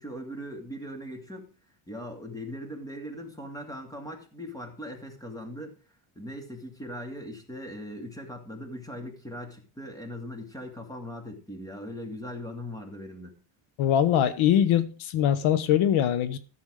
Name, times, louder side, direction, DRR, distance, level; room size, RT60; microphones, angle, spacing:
voice 1, 0.0-1.5 1.9-5.7 6.1-13.3, equal, 5° left, 2.6 m, -39 dB
voice 2, 13.8-16.4, left 10 dB, 75° left, 1.1 m, -22 dB
13.5 x 7.2 x 4.9 m
cardioid pair, 150°, 49 cm